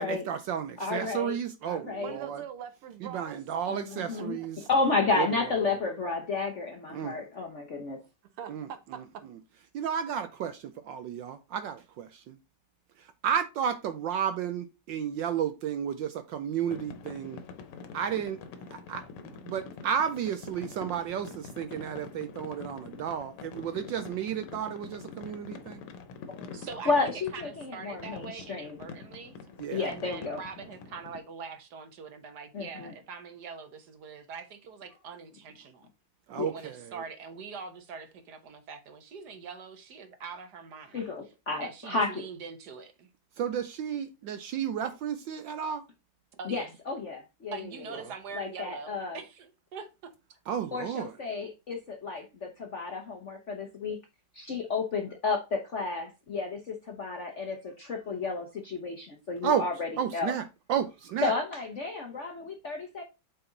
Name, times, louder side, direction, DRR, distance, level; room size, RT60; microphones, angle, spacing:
voice 1, 0.0-2.4 3.0-4.7 5.1-5.3 6.9-7.1 8.5-8.7 9.7-12.4 13.0-17.4 17.9-18.4 18.7-25.8 29.6-29.9 36.3-37.0 43.4-45.8 48.0-48.1 50.5-51.1 59.4-59.7 60.0-60.4 60.7-61.3, right 8 dB, 70° right, 1.2 m, -32 dB
voice 2, 0.8-1.3 1.6-2.1 3.7-4.4 4.7-8.0 26.3-26.5 26.9-28.8 29.7-30.4 32.5-32.9 36.3-36.5 40.9-42.2 46.4-48.0 48.3-49.2 50.7-54.0 54.3-60.3 61.2-63.0, left 4 dB, 50° left, 0.9 m, -32 dB
voice 3, 2.0-4.7 8.4-9.2, right 8 dB, 90° right, 1.8 m, -44 dB
sound 1, 16.7-31.2, left 5 dB, 90° left, 1.8 m, -45 dB
voice 4, 26.5-29.4 29.8-35.9 36.5-41.1 41.6-43.1 46.4-46.7 47.5-50.1, right 5 dB, 55° right, 1.5 m, -43 dB
8.0 x 4.3 x 3.9 m
omnidirectional pair, 2.4 m